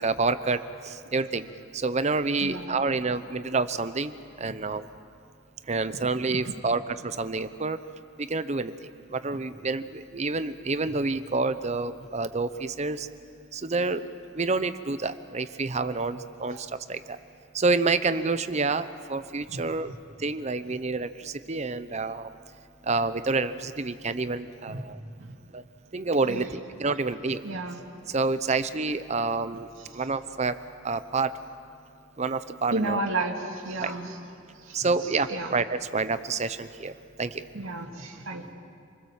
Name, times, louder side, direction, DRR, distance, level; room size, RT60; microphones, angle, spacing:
voice 1, 0.0-1.5 1.7-4.9 5.7-7.8 8.2-8.7 9.1-13.1 13.5-14.1 14.3-17.2 17.5-19.9 20.2-22.3 22.9-25.0 25.5-25.6 25.9-27.4 28.1-29.7 29.9-30.6 30.8-31.3 32.2-33.0 33.8-33.9 34.7-37.4, right 3 dB, 35° right, 12 dB, 0.8 m, -28 dB
voice 2, 2.4-2.9 6.3-6.5 16.5-16.6 19.5-19.6 24.7-24.8 25.2-25.3 26.2-26.5 27.4-27.8 29.9-30.0 32.7-34.2 34.6-34.8 35.3-35.5 37.5-38.5, right 2 dB, 80° right, 2 dB, 2.4 m, -32 dB
28.0 x 21.0 x 7.3 m, 2.3 s
head